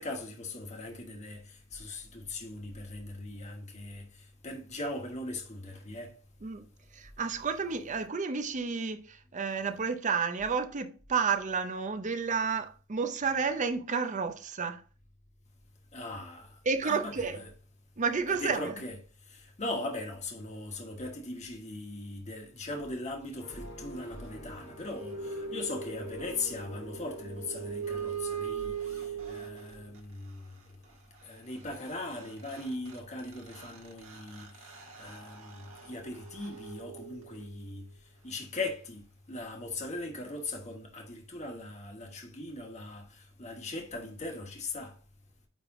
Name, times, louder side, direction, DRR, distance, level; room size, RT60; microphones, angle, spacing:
voice 1, 0.0-4.1 4.4-6.1 15.9-16.5 16.8-17.5 18.3-19.0 19.3-30.5 31.2-34.5 35.0-37.8 38.2-43.1 43.4-44.9, left 2 dB, 35° left, 1.3 m, -39 dB
voice 2, 7.0-14.8 16.7-17.4 18.0-18.7, right 5 dB, 35° right, 0.6 m, -31 dB
sound 1, 23.4-29.9, equal, 65° left, 1.5 m, -49 dB
sound 2, 24.6-30.0 31.9-32.0 32.2-37.6, right 6 dB, 70° right, 1.6 m, -41 dB
9.3 x 3.3 x 3.6 m
head